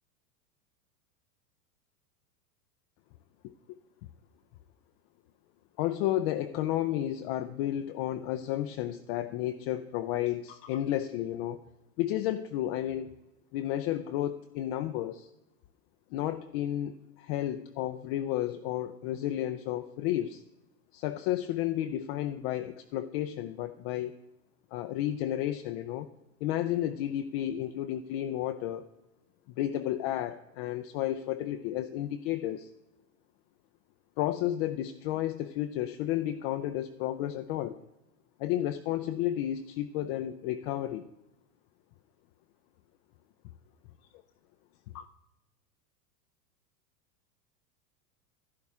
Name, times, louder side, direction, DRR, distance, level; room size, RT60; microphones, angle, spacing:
voice 1, 3.4-3.8 5.8-11.6 12.0-13.1 13.5-15.3 16.1-20.4 20.9-24.2 24.7-26.1 26.4-28.9 29.6-32.7 34.2-37.8 38.4-41.1 44.9-45.1, left 12 dB, 40° left, 8 dB, 0.4 m, -32 dB
11.5 x 11.0 x 3.5 m, 0.94 s
hypercardioid pair, 105°, 48 cm